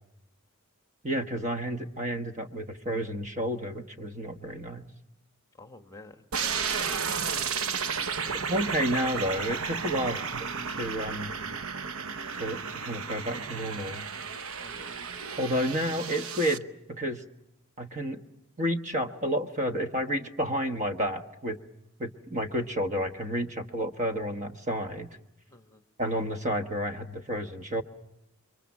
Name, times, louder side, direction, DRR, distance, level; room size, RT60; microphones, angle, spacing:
voice 1, 1.0-4.9 8.5-11.3 12.3-14.1 15.4-17.2 17.8-18.2 18.6-21.6 22.0-25.1 26.0-27.8, equal, 35° right, 6 dB, 1.3 m, -31 dB
voice 2, 5.6-7.4 8.2-8.5 10.0-10.3 14.6-14.9 25.5-25.8, left 2 dB, 15° left, 7 dB, 1.3 m, -50 dB
sound 1, 6.3-16.6, right 6 dB, 65° right, 0.9 m, -33 dB
29.0 x 23.5 x 7.2 m, 0.86 s
head